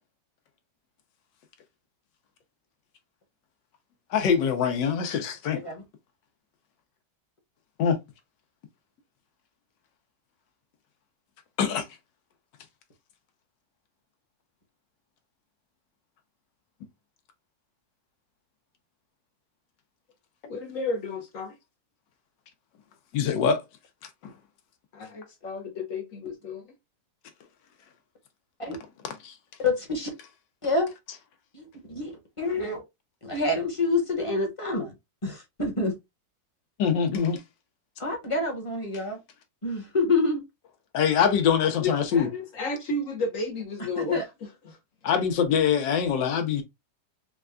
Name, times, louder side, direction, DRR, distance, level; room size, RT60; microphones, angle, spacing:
voice 1, 4.1-5.6 7.8-8.0 11.6-11.8 23.1-23.6 24.2-24.3 29.2-29.3 36.8-37.4 40.9-42.3 45.0-46.6, left 7 dB, 85° left, 1.4 m, -24 dB
voice 2, 20.5-21.6 24.9-26.7 41.6-44.8, left 3 dB, 60° left, 0.9 m, -33 dB
voice 3, 29.6-30.1 30.6-30.9 31.5-32.8 33.2-34.9 35.2-35.9 38.0-39.2 39.6-40.4 44.0-44.2, left 3 dB, 25° left, 0.8 m, -27 dB
4.5 x 2.2 x 2.4 m
omnidirectional pair, 1.9 m